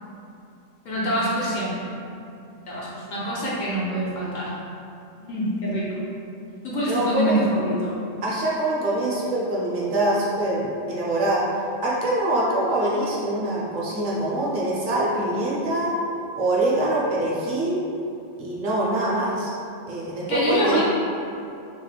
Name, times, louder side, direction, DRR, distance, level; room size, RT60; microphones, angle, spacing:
voice 1, 0.8-1.9 2.7-4.5 5.2-6.1 6.6-8.0 20.3-20.8, equal, 60° left, -6 dB, 0.5 m, -25 dB
voice 2, 6.9-7.5 8.2-11.4 11.8-15.9 16.4-17.8 18.4-19.5 19.9-20.8, right 1 dB, 55° right, -6 dB, 0.6 m, -24 dB
3.8 x 2.1 x 2.3 m, 2.7 s
omnidirectional pair, 1.3 m